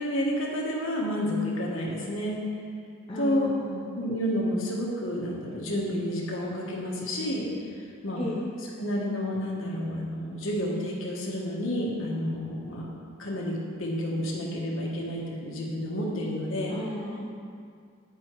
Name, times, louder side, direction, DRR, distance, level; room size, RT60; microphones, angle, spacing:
voice 1, 0.0-2.4 3.2-3.5 3.9-7.5 8.0-8.2 8.8-12.9 13.2-16.7, equal, 80° left, -3 dB, 1.4 m, -30 dB
voice 2, 3.1-3.9 8.2-8.5 16.7-17.3, left 1 dB, 25° left, -6 dB, 0.7 m, -34 dB
8.8 x 4.9 x 4.6 m, 2.2 s
head